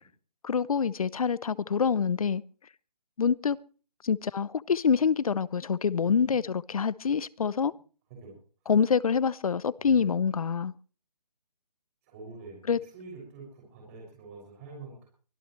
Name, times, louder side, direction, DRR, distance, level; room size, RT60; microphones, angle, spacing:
voice 1, 0.4-2.4 3.2-3.6 4.0-7.7 8.7-10.7 12.7-12.8, left 6 dB, 55° left, 0.7 m, -26 dB
voice 2, 6.0-6.3 8.2-8.3 9.8-10.1 12.0-15.1, right 3 dB, 20° right, 6.5 m, -46 dB
24.0 x 14.5 x 3.2 m
hypercardioid pair, 165°, 21 cm